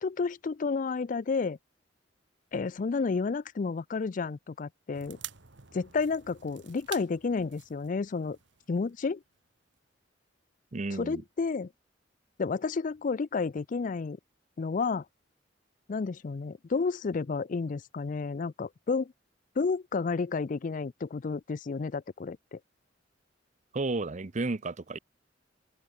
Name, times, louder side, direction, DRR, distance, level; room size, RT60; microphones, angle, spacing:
voice 1, 0.0-1.6 2.5-5.2 5.7-8.4 8.7-9.2 10.9-11.7 12.4-14.2 14.6-15.0 15.9-19.1 19.6-22.6, left 4 dB, 45° left, 0.4 m, -31 dB
sound 1, 4.9-9.5 9.8-9.9, right 12 dB, 70° right, 1.8 m, -48 dB
voice 2, 10.7-11.2 23.7-25.0, right 3 dB, 40° right, 0.7 m, -32 dB
open air
head